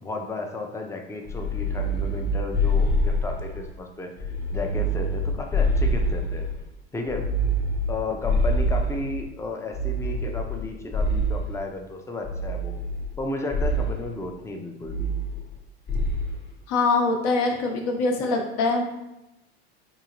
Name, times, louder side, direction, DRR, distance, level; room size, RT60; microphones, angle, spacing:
voice 1, 0.0-6.5 6.9-7.3 7.9-12.8 13.2-15.1, left 2 dB, 10° left, 2 dB, 0.5 m, -33 dB
sound 1, 1.3-3.7 4.2-6.6 7.1-9.3 9.7-11.6 12.2-13.2 13.5-14.0 14.9-15.6 15.9-16.3, equal, 30° left, 0.9 m, -25 dB
voice 2, 16.7-18.8, left 3 dB, 60° left, 2 dB, 0.9 m, -23 dB
3.8 x 2.8 x 3.0 m, 0.93 s
hypercardioid pair, 90°, 31 cm